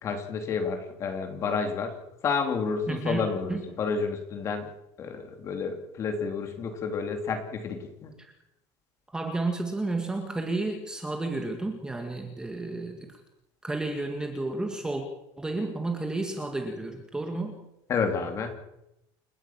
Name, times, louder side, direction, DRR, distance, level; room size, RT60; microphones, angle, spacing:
voice 1, 0.0-1.9 2.2-4.7 5.0-8.1 17.9-18.6, left 5 dB, 25° left, 5 dB, 3.2 m, -30 dB
voice 2, 2.9-3.2 3.5-3.7 8.2-8.3 9.1-13.2 13.6-15.1 15.4-17.6, right 2 dB, 5° right, 4 dB, 1.9 m, -31 dB
29.5 x 11.0 x 8.8 m, 0.85 s
cardioid pair, 180°, 11 cm